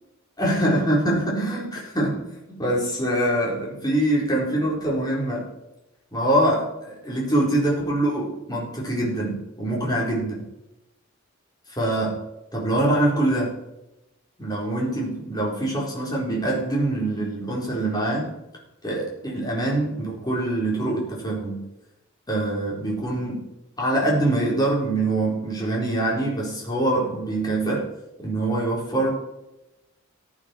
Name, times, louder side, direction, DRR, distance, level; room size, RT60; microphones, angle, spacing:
voice 1, 0.4-5.5 6.1-10.5 11.8-12.2 12.5-13.5 14.4-18.3 18.8-21.7 22.3-23.4 23.8-27.9 28.2-29.1, right 1 dB, 20° left, -3 dB, 4.2 m, -24 dB
14.0 x 8.9 x 4.6 m, 0.92 s
head